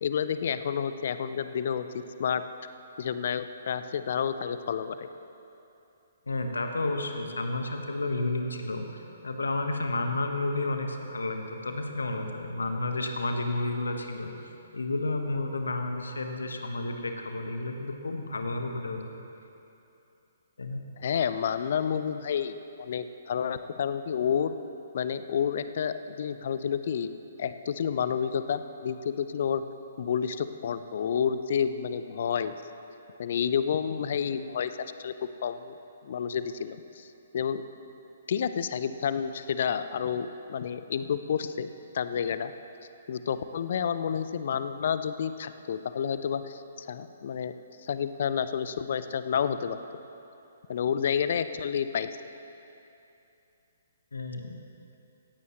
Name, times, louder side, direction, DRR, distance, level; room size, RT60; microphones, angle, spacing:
voice 1, 0.0-2.4 3.0-5.1 21.0-24.5 24.9-27.1 27.4-29.6 30.0-32.5 33.2-34.7 35.0-35.1 35.4-35.7 36.0-37.1 37.3-37.6 38.3-41.7 41.9-42.5 43.1-47.5 47.8-49.8 50.7-52.1, left 7 dB, 50° left, 12 dB, 0.6 m, -30 dB
voice 2, 6.3-19.0 20.6-20.8 54.1-54.6, left 2 dB, 70° left, 4 dB, 1.3 m, -31 dB
17.5 x 15.0 x 3.1 m, 2.8 s
figure-of-eight pair, 125°, 0 cm